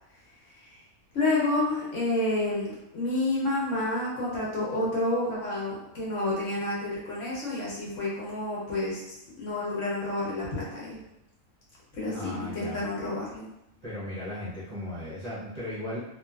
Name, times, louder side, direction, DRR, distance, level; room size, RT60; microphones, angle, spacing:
voice 1, 1.1-11.0 11.9-13.5, left 2 dB, 60° left, -6 dB, 1.1 m, -29 dB
voice 2, 12.1-12.8 13.8-16.0, left 1 dB, 35° right, -11 dB, 0.7 m, -36 dB
2.9 x 2.3 x 2.3 m, 0.87 s
omnidirectional pair, 1.5 m